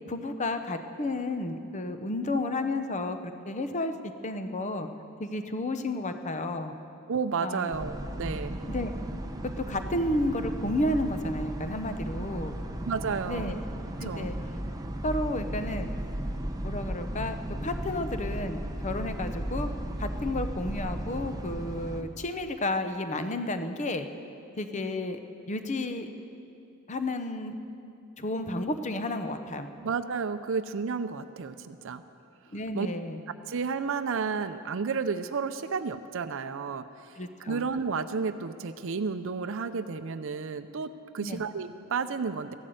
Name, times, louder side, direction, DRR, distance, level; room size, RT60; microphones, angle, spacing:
voice 1, 0.1-3.9 4.2-4.9 5.2-6.7 7.4-7.7 8.7-8.9 9.4-12.6 13.3-13.6 14.0-14.3 15.0-15.9 16.6-17.4 17.6-19.7 20.0-24.1 24.6-25.2 25.5-26.1 26.9-27.5 28.2-29.7 32.5-33.2 37.1-37.6 41.2-41.4, left 1 dB, 35° left, 8 dB, 0.8 m, -31 dB
voice 2, 7.1-8.6 12.9-13.6 14.0-14.3 29.8-32.0 32.7-32.9 33.5-36.8 37.5-42.5, right 5 dB, 65° right, 11 dB, 0.5 m, -32 dB
sound 1, 7.7-22.0, right 1 dB, 15° right, 0.8 m, -35 dB
15.0 x 11.5 x 7.9 m, 2.7 s
head